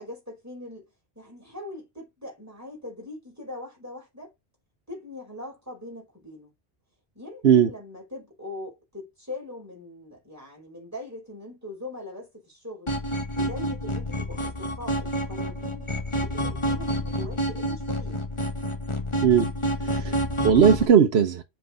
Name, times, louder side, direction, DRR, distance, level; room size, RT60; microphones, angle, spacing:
voice 1, 0.0-4.3 4.9-6.5 7.1-12.9 13.3-15.9 16.1-18.2, left 1 dB, 15° right, 4.9 m, -41 dB
sound 1, 12.9-20.9, equal, 30° left, 1.3 m, -28 dB
voice 2, 19.8-21.4, right 8 dB, 85° right, 1.1 m, -19 dB
7.6 x 4.7 x 4.0 m
omnidirectional pair, 1.0 m